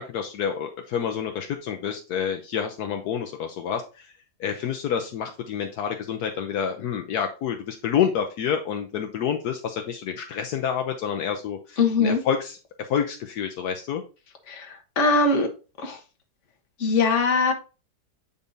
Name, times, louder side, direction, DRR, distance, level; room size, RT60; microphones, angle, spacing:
voice 1, 0.0-4.1 4.4-12.6 12.9-14.0, left 8 dB, 75° left, 4 dB, 1.2 m, -28 dB
voice 2, 11.8-12.2 14.5-15.5 15.8-16.0 16.8-17.5, left 4 dB, 50° left, 3 dB, 1.5 m, -21 dB
8.4 x 5.3 x 2.7 m, 0.32 s
omnidirectional pair, 1.7 m